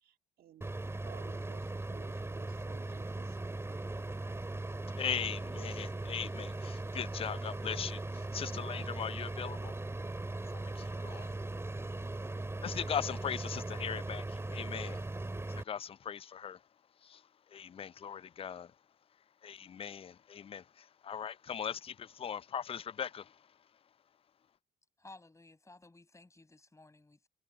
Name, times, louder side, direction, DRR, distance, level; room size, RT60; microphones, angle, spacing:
voice 1, 0.0-4.3, right 11 dB, 65° right, 1.9 m, -58 dB
sound 1, 0.6-15.6, right 2 dB, 15° right, 2.2 m, -39 dB
voice 2, 4.9-9.8 10.5-11.3 12.6-15.0 15.5-16.6 17.0-18.8 19.4-23.6, left 8 dB, 35° left, 0.5 m, -40 dB
voice 3, 25.0-27.3, left 2 dB, 15° left, 6.0 m, -56 dB
hypercardioid pair, 60°, 17 cm